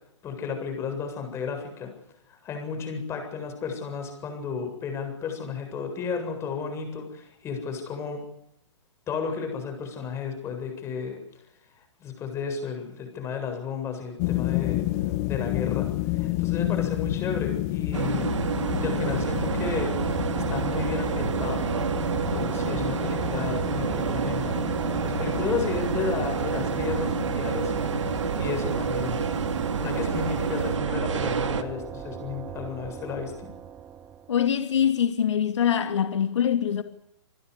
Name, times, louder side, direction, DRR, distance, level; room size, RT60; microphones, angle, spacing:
voice 1, 0.2-1.9 2.3-8.3 9.1-11.2 11.7-14.8 15.2-18.3 18.8-20.0 20.3-21.6 22.3-29.2 29.8-33.5, left 5 dB, 15° left, 7.7 m, -33 dB
sound 1, 14.2-30.7, left 16 dB, 35° left, 2.2 m, -31 dB
sound 2, 17.9-31.6, right 6 dB, 80° right, 2.8 m, -28 dB
sound 3, 18.7-34.5, right 8 dB, 15° right, 1.2 m, -40 dB
voice 2, 34.3-36.8, left 9 dB, 75° left, 2.6 m, -23 dB
28.0 x 20.5 x 8.4 m
hypercardioid pair, 155°, 15 cm